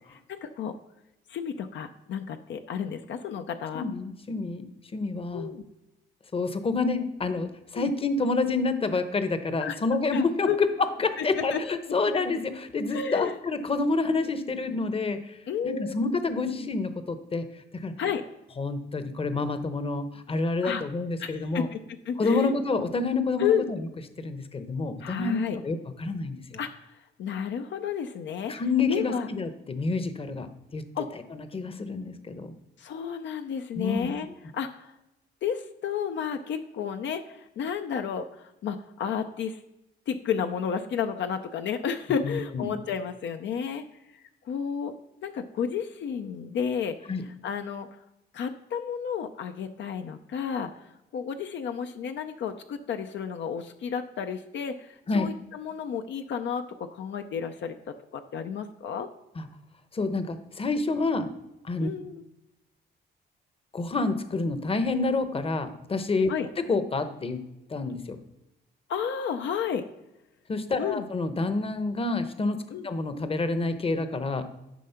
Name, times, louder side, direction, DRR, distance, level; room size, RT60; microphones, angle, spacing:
voice 1, 0.1-0.7 1.3-3.8 5.3-5.6 7.7-7.9 9.6-9.8 10.1-10.6 11.2-11.6 12.9-13.4 15.5-15.9 18.0-18.2 20.6-20.8 21.2-22.5 23.4-23.7 25.0-25.6 26.6-26.9 27.2-28.5 28.9-29.3 30.9-31.1 32.8-34.3 34.5-34.9 35.4-39.6 40.1-43.8 44.1-44.9 45.2-47.9 48.3-59.1 61.8-62.2 66.3-66.5 68.9-69.8 70.8-71.1 72.7-72.9, left 7 dB, 65° left, 7 dB, 0.6 m, -32 dB
voice 2, 3.7-5.5 6.3-15.4 15.6-17.4 17.7-17.9 18.6-21.7 22.2-23.9 24.2-26.6 28.5-30.8 31.3-32.5 33.8-34.1 42.2-42.7 47.1-47.2 55.1-55.3 59.4-59.5 59.9-61.3 61.6-61.9 63.7-66.3 66.7-67.4 67.7-68.2 70.5-74.4, left 3 dB, 30° left, 10 dB, 0.9 m, -28 dB
10.0 x 3.7 x 5.7 m, 0.93 s
cardioid pair, 90°, 20 cm